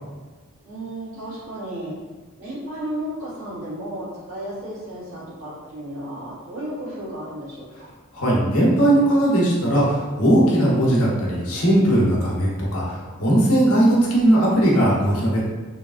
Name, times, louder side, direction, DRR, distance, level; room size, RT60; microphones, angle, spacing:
voice 1, 0.6-1.9 2.4-7.9, right 1 dB, 70° right, -10 dB, 1.5 m, -33 dB
voice 2, 8.1-15.4, right 1 dB, 80° left, -5 dB, 0.9 m, -18 dB
3.2 x 2.4 x 2.5 m, 1.3 s
head